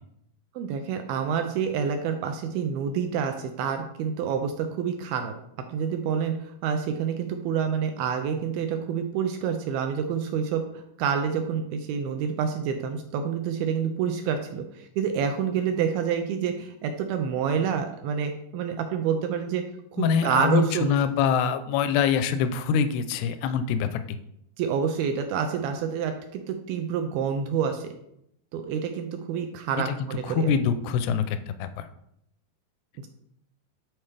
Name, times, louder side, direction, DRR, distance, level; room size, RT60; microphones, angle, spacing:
voice 1, 0.6-5.3 5.7-10.6 11.0-19.6 19.9-21.0 24.6-27.9 28.5-30.6, right 7 dB, 80° right, 5 dB, 2.2 m, -28 dB
voice 2, 20.0-24.0 29.9-30.0 30.3-31.9, left 7 dB, 85° left, 11 dB, 2.6 m, -24 dB
9.5 x 4.3 x 3.3 m, 0.76 s
omnidirectional pair, 4.7 m